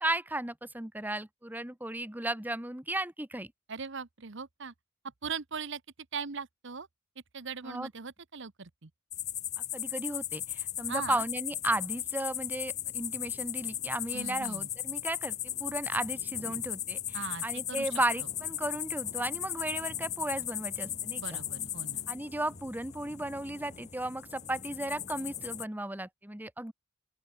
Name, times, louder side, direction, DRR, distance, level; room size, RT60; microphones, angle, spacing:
voice 1, 0.0-3.5 7.6-7.9 9.7-17.2 17.4-21.4 22.1-26.7, right 1 dB, 10° right, 1.3 m, -35 dB
voice 2, 3.7-4.7 5.2-5.8 6.1-6.9 7.3-8.9 10.9-11.2 14.1-14.7 17.1-17.9 21.2-22.1, right 5 dB, 60° right, 1.1 m, -40 dB
sound 1, 9.1-25.6, left 11 dB, 35° left, 1.2 m, -37 dB
open air
head